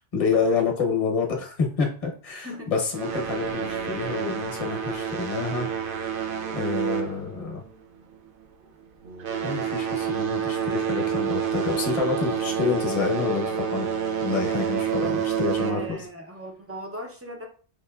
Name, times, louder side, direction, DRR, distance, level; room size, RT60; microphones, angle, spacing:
voice 1, 0.1-5.7 6.5-7.6 9.4-13.9 14.2-16.0, left 5 dB, 35° left, 2 dB, 0.8 m, -28 dB
sound 1, 2.9-7.8 8.1-8.4 9.0-16.1, right 8 dB, 60° right, 0.7 m, -28 dB
voice 2, 15.6-17.5, equal, 25° right, 3 dB, 0.3 m, -38 dB
4.8 x 2.7 x 2.3 m, 0.42 s
omnidirectional pair, 1.1 m